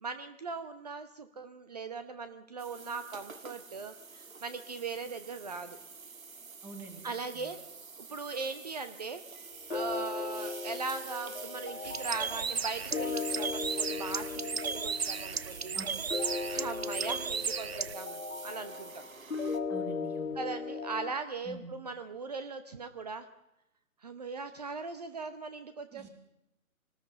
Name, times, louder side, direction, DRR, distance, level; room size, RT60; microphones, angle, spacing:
voice 1, 0.0-5.8 7.0-7.6 8.0-9.2 9.7-15.8 16.5-19.0 20.3-23.3 24.0-26.1, right 4 dB, 25° right, 10 dB, 1.0 m, -39 dB
sound 1, 2.6-19.6, right 5 dB, 65° right, 1.7 m, -47 dB
voice 2, 6.6-7.5 15.7-15.9 19.7-20.4 21.4-21.7 25.9-26.1, right 1 dB, 5° right, 5 dB, 1.1 m, -45 dB
sound 2, 9.7-21.1, left 4 dB, 65° left, 2.4 m, -38 dB
Bird, 11.8-17.9, right 6 dB, 45° right, 0.6 m, -35 dB
24.5 x 19.5 x 5.4 m, 0.88 s
figure-of-eight pair, 145°, 44 cm